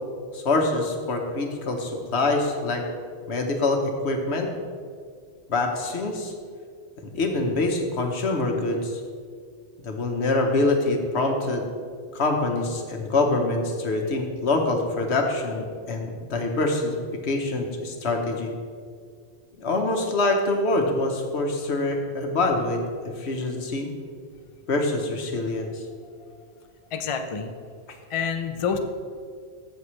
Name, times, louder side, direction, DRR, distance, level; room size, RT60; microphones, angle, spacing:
voice 1, 0.3-2.8 3.3-4.5 5.5-6.3 7.1-9.0 9.8-11.6 12.1-17.0 17.2-18.5 19.6-22.8 23.2-23.9 24.7-25.8, left 2 dB, 65° left, 3 dB, 1.3 m, -25 dB
voice 2, 26.9-27.5 28.1-28.8, left 6 dB, 40° left, 6 dB, 0.4 m, -27 dB
14.5 x 6.5 x 3.2 m, 2.1 s
omnidirectional pair, 1.2 m